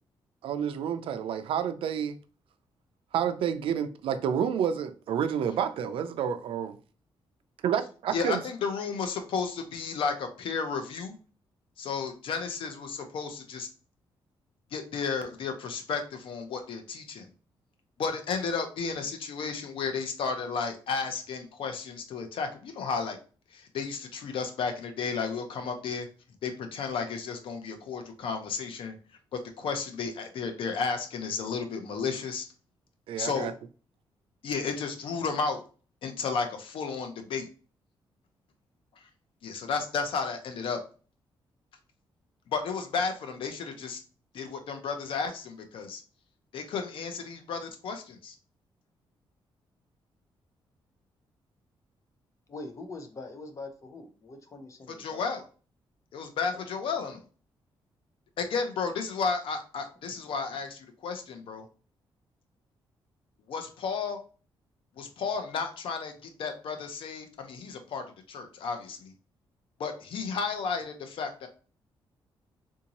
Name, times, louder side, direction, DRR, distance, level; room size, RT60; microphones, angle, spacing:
voice 1, 0.4-2.2 3.1-6.8 7.6-8.4 33.1-33.5, right 8 dB, 80° right, 0.4 m, -29 dB
voice 2, 8.1-11.2 11.8-13.7 14.7-17.3 18.0-23.2 23.5-26.1 26.4-29.0 29.6-32.5 33.2-33.5 34.4-35.6 36.0-37.5 39.0-39.1 39.4-40.8 42.5-44.0 44.3-46.0 46.5-48.3 55.0-55.4 56.1-57.2 58.4-61.6 63.5-64.2 65.0-66.1 66.4-69.1 69.8-71.5, left 5 dB, 70° left, 0.7 m, -33 dB
voice 3, 52.5-55.2 56.5-56.6 60.0-60.2, left 3 dB, 35° left, 0.7 m, -43 dB
3.6 x 2.7 x 2.9 m
cardioid pair, 130°, 9 cm